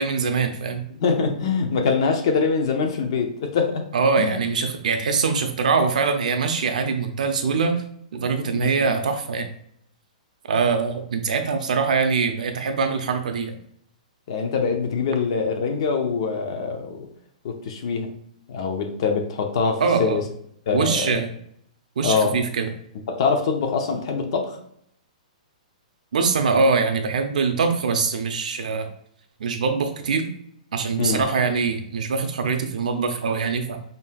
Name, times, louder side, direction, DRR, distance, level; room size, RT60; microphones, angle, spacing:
voice 1, 0.0-0.8 3.9-7.8 8.1-9.5 10.5-13.6 19.8-20.2 20.7-21.3 22.0-22.7 26.1-28.9 29.4-30.3 30.7-33.8, right 5 dB, 70° right, 6 dB, 0.6 m, -23 dB
voice 2, 1.0-3.8 4.2-4.4 8.5-8.9 14.3-17.1 17.4-18.1 18.5-20.2 20.7-21.2 22.0-22.4 23.1-24.6 31.0-31.2, left 5 dB, 40° left, 4 dB, 0.7 m, -24 dB
5.4 x 2.9 x 2.3 m, 0.70 s
hypercardioid pair, 175°, 4 cm